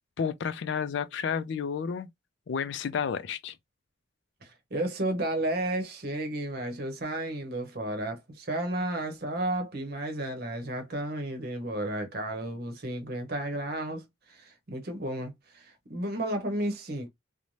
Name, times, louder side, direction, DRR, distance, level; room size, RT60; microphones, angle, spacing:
voice 1, 0.2-2.1 2.5-3.6, left 6 dB, 65° left, 0.3 m, -31 dB
voice 2, 4.4-17.1, right 1 dB, 50° right, 0.8 m, -33 dB
2.6 x 2.1 x 3.1 m
head